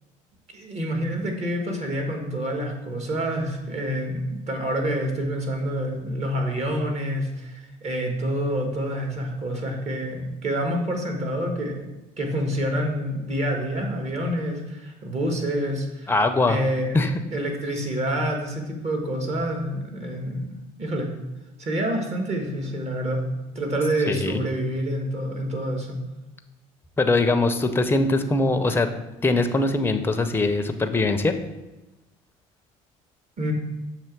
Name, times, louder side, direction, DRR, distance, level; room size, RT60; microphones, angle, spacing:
voice 1, 0.5-11.9 12.2-16.1 16.4-17.0 17.3-20.5 20.8-21.1 21.6-23.2 23.5-26.0 33.4-33.5, right 1 dB, 45° right, 3 dB, 1.4 m, -27 dB
voice 2, 16.1-16.6 16.9-17.1 24.1-24.4 27.0-28.9 29.2-31.3, left 2 dB, 15° left, 7 dB, 0.5 m, -22 dB
6.8 x 3.0 x 5.9 m, 1.0 s
supercardioid pair, 85°, 16 cm